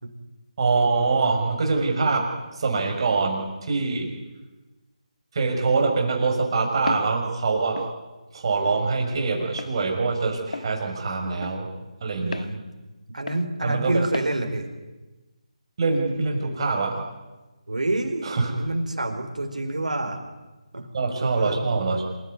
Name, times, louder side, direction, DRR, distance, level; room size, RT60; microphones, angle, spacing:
voice 1, 0.6-4.1 5.3-7.8 8.3-11.7 12.0-12.5 13.6-14.0 15.8-17.0 18.2-18.5 20.9-22.0, right 4 dB, 45° right, 2 dB, 6.2 m, -24 dB
Walk footsteps, 6.9-7.1 7.8-7.9 8.7-8.8 9.6-9.8 10.5-10.7 11.4-11.6 12.3-12.5 13.3-13.5 14.1-14.3, left 3 dB, 85° left, 1.2 m, -33 dB
voice 2, 12.2-12.7 13.1-14.7 17.7-20.2 20.7-20.9 21.2-21.6, right 2 dB, 85° right, 4 dB, 4.5 m, -28 dB
27.5 x 15.0 x 9.7 m, 1.1 s
figure-of-eight pair, 160°, 4 cm